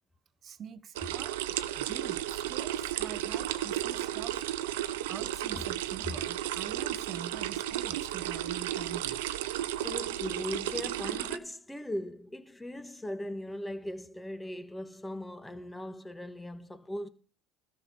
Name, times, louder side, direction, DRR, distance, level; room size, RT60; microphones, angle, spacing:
voice 1, 0.4-1.3 1.8-4.4 4.6-4.7 5.1-9.2, right 8 dB, 45° right, 1.0 m, -45 dB
sound 1, 0.9-11.4, right 13 dB, 85° right, 0.7 m, -33 dB
voice 2, 9.8-17.1, left 1 dB, 10° left, 1.5 m, -39 dB
13.0 x 5.8 x 7.1 m
supercardioid pair, 85°, 0 cm